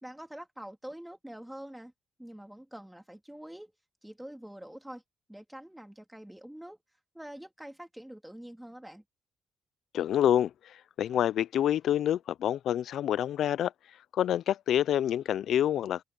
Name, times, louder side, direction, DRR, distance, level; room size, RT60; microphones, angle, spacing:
voice 1, 0.0-1.9 2.2-3.7 4.0-5.0 5.3-6.8 7.1-9.0, right 1 dB, 5° right, 3.0 m, -45 dB
voice 2, 9.9-13.7 14.1-16.0, left 10 dB, 70° left, 0.4 m, -27 dB
cardioid pair, 90°, 0 cm